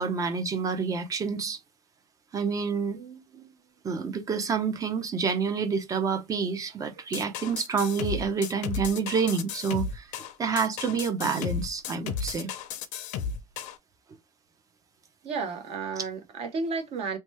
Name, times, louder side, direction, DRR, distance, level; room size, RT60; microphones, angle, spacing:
voice 1, 0.0-1.6 2.3-3.0 3.8-10.1 10.4-12.5, right 5 dB, 25° right, 0.6 m, -28 dB
voice 2, 2.9-3.6 15.2-17.2, right 4 dB, 45° right, 1.0 m, -33 dB
sound 1, 7.1-13.8, left 6 dB, 65° left, 0.6 m, -34 dB
3.0 x 2.2 x 3.1 m
cardioid pair, 145°, 14 cm